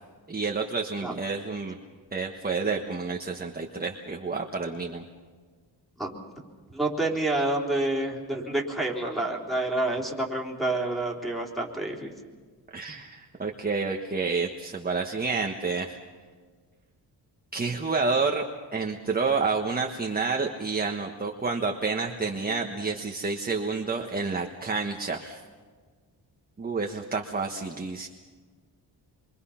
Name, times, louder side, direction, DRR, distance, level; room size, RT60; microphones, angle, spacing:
voice 1, 0.3-1.8 2.1-5.0 12.7-16.0 17.5-18.4 18.7-25.4 26.6-28.1, right 4 dB, 20° right, 2 dB, 1.4 m, -29 dB
voice 2, 6.7-12.1, right 2 dB, ahead, -3 dB, 3.6 m, -28 dB
27.5 x 23.5 x 5.8 m, 1.5 s
wide cardioid pair, 130°, 43 cm